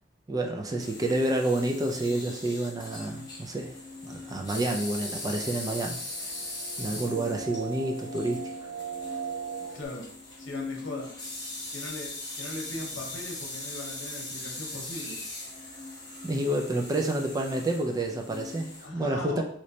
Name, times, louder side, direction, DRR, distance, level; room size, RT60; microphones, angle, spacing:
voice 1, 0.3-3.7 4.0-6.0 6.8-8.4 16.2-19.4, right 1 dB, 20° right, 2 dB, 0.3 m, -29 dB
sound 1, 0.8-18.9, left 2 dB, 20° left, 0.9 m, -40 dB
sound 2, 4.6-9.9, right 7 dB, 50° right, 0.8 m, -40 dB
voice 2, 9.7-10.1 10.4-11.1 11.7-15.2 18.8-19.4, left 2 dB, 80° left, 0 dB, 0.8 m, -39 dB
3.1 x 3.0 x 2.7 m, 0.62 s
head